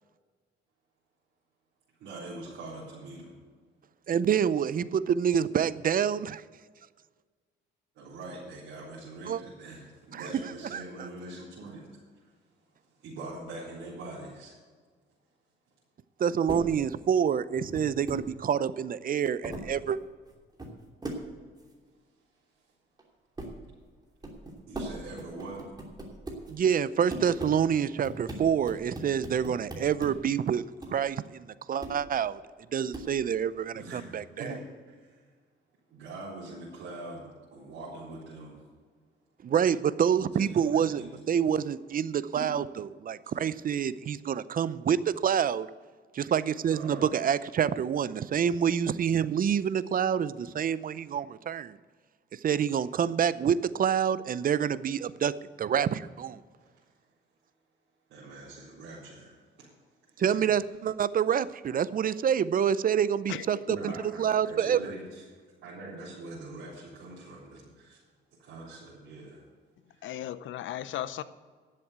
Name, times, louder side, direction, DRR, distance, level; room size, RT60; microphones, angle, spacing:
voice 1, 2.0-3.3 7.9-12.3 13.0-14.6 24.7-25.6 33.7-35.2 35.9-38.6 40.3-41.3 42.3-42.6 43.2-43.3 46.7-47.1 48.3-48.7 58.1-59.7 60.1-60.5 63.7-65.2 65.6-68.0 68.4-69.4 69.9-70.0, right 2 dB, 80° right, 4.0 m, -43 dB
voice 2, 4.1-6.4 9.3-9.4 10.1-10.3 10.7-10.8 16.2-20.0 26.5-30.6 30.9-32.4 32.7-34.5 39.4-45.7 46.1-51.8 52.3-55.3 55.6-56.4 60.2-64.8, right 8 dB, 45° right, 0.6 m, -27 dB
sound 1, 16.5-16.6 17.6-18.2 18.7-18.8 19.2-19.7 20.2-20.7 21.0-21.2 21.6-21.7 23.0-23.1 23.4-23.6 24.2-24.9 25.2-26.5 27.1-27.6 28.0-30.1 30.8-30.9 31.8-32.0 32.9-33.1, right 1 dB, 20° right, 2.9 m, -38 dB
voice 3, 63.3-64.0 70.0-71.2, left 12 dB, 75° left, 0.7 m, -36 dB
11.0 x 7.7 x 8.1 m
cardioid pair, 90°, 20 cm